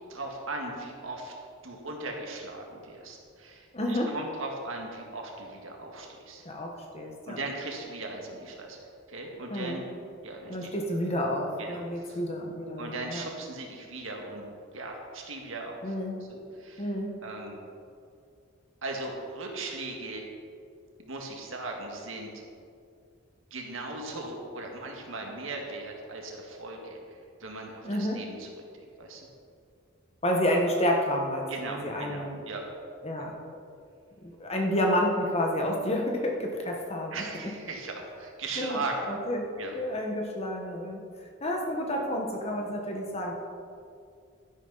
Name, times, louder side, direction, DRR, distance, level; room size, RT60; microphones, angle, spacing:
voice 1, 0.1-1.4 1.6-6.4 7.3-8.8 9.1-9.8 10.2-10.7 11.6-12.2 12.8-14.4 14.7-15.9 16.3-16.9 17.2-17.6 18.8-20.2 21.0-22.4 23.5-28.5 28.8-29.3 31.5-32.6 33.2-33.3 37.1-39.1 39.6-39.7, right 2 dB, 70° right, 1 dB, 1.9 m, -38 dB
voice 2, 3.7-4.1 6.4-7.4 9.5-9.8 10.5-13.2 15.8-16.2 16.8-17.1 27.8-28.3 30.2-32.4 33.0-33.4 34.2-37.2 38.6-38.8 39.1-39.4 39.7-41.0 41.4-43.3, equal, 30° left, 1 dB, 1.4 m, -30 dB
12.0 x 11.0 x 4.1 m, 2.3 s
head